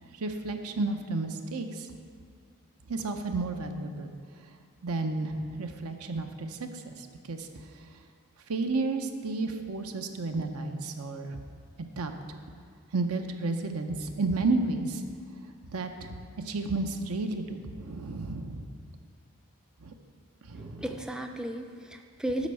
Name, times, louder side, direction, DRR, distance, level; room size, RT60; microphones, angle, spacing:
voice 1, 0.2-1.9 2.9-4.1 4.8-6.9 7.3-7.5 8.5-11.4 12.0-12.1 12.9-15.0 15.7-16.2 16.5-18.7 19.8-19.9 20.5-20.8, right 3 dB, 85° right, 6 dB, 0.7 m, -32 dB
voice 2, 20.5-22.5, right 1 dB, 5° right, 4 dB, 0.3 m, -35 dB
8.1 x 5.3 x 6.8 m, 2.3 s
head